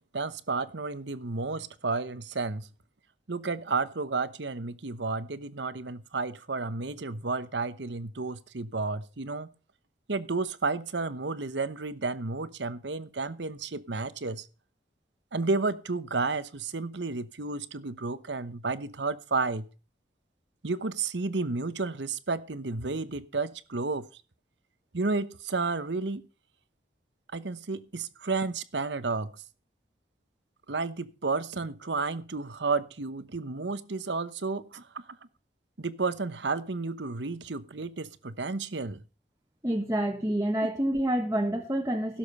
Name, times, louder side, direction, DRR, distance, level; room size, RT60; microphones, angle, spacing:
voice 1, 0.1-2.7 3.3-9.5 10.1-14.5 15.3-19.7 20.6-24.1 24.9-26.2 27.3-29.3 30.7-35.0 35.8-39.0 40.6-40.7, right 3 dB, 85° right, 15 dB, 1.0 m, -32 dB
voice 2, 39.6-42.2, right 1 dB, 15° right, 2 dB, 1.2 m, -28 dB
16.5 x 7.3 x 5.4 m, 0.35 s
head